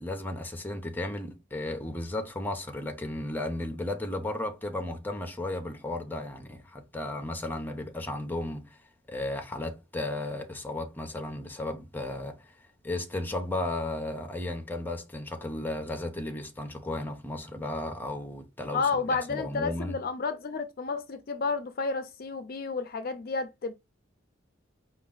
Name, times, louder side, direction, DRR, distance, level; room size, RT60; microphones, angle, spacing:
voice 1, 0.0-8.8 9.1-12.5 12.8-19.0 19.3-20.0, left 1 dB, 10° left, 0.8 m, -34 dB
voice 2, 18.7-23.7, left 4 dB, 50° left, 0.4 m, -31 dB
4.9 x 2.5 x 3.8 m
head